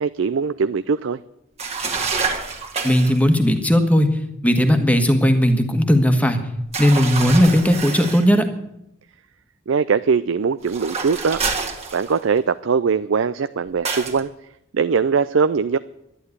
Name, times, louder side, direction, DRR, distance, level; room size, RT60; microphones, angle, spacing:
voice 1, 0.0-1.2 9.7-11.4 11.9-14.3 14.7-15.8, right 5 dB, 70° right, 14 dB, 0.4 m, -21 dB
sound 1, 1.6-3.2 6.7-8.3 10.6-12.4 13.9-14.2, right 4 dB, 30° right, 1.9 m, -27 dB
voice 2, 2.8-4.1 4.4-6.4 6.8-8.5, equal, 5° left, 7 dB, 1.4 m, -16 dB
11.5 x 11.5 x 9.6 m, 0.82 s
head